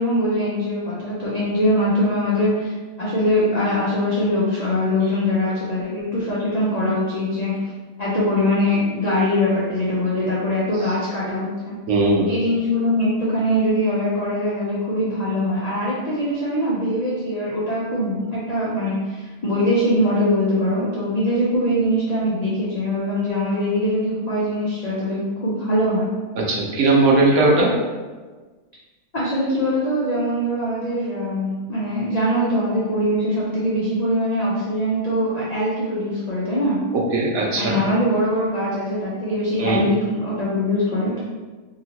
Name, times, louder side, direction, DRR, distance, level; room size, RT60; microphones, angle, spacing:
voice 1, 0.0-2.7 3.0-7.7 8.0-11.8 12.2-26.1 29.1-36.8 37.6-41.2, left 1 dB, 65° left, -8 dB, 0.4 m, -22 dB
voice 2, 11.9-12.3 26.4-27.7 36.9-37.8 39.6-39.8, right 2 dB, 70° right, -2 dB, 1.0 m, -18 dB
2.8 x 2.8 x 2.8 m, 1.3 s
omnidirectional pair, 1.6 m